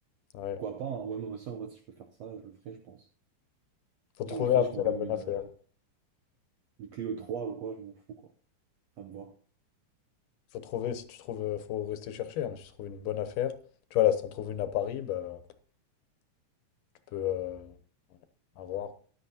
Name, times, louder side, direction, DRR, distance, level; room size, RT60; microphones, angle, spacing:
voice 1, 0.6-3.1 4.3-5.5 6.8-8.3 9.0-9.3, right 7 dB, 80° right, 1.5 m, -39 dB
voice 2, 4.2-5.4 10.5-13.6 13.9-15.4 17.1-17.7 18.6-18.9, left 11 dB, 75° left, 2.4 m, -31 dB
15.0 x 11.0 x 2.8 m
omnidirectional pair, 3.9 m